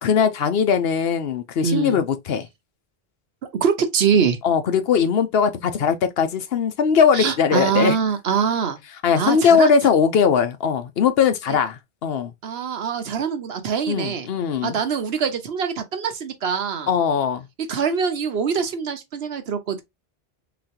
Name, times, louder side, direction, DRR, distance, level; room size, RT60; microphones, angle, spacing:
voice 1, 0.0-2.5 4.4-8.0 9.0-12.3 13.9-14.8 16.9-17.5, left 6 dB, 70° left, 0.9 m, -20 dB
voice 2, 1.6-2.0 3.6-4.4 7.1-8.8 9.2-9.9 12.4-14.3 14.6-16.9 17.6-19.8, right 6 dB, 75° right, 1.1 m, -23 dB
3.9 x 3.1 x 2.8 m
omnidirectional pair, 1.1 m